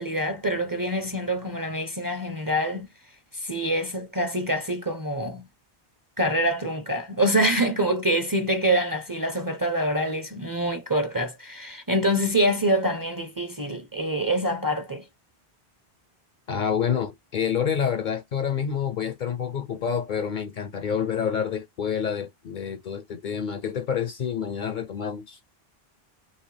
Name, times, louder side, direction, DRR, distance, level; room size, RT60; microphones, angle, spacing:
voice 1, 0.0-2.9 3.3-5.5 6.2-15.0, right 1 dB, 25° right, 0.6 m, -25 dB
voice 2, 16.5-25.4, left 7 dB, 60° left, 0.6 m, -28 dB
5.5 x 2.9 x 3.3 m
omnidirectional pair, 1.0 m